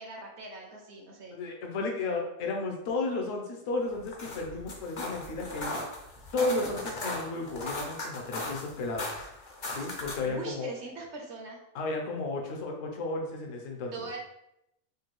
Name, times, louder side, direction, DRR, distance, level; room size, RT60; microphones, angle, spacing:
voice 1, 0.0-1.4 6.4-6.7 10.2-11.6 13.9-14.2, right 3 dB, 60° right, 1 dB, 0.8 m, -41 dB
voice 2, 1.3-5.8 6.3-9.1 9.7-10.7 11.7-14.0, left 3 dB, 65° left, 1 dB, 1.1 m, -33 dB
sound 1, 3.9-10.3, left 2 dB, 45° left, 0.6 m, -38 dB
5.2 x 2.3 x 3.0 m, 0.81 s
omnidirectional pair, 1.5 m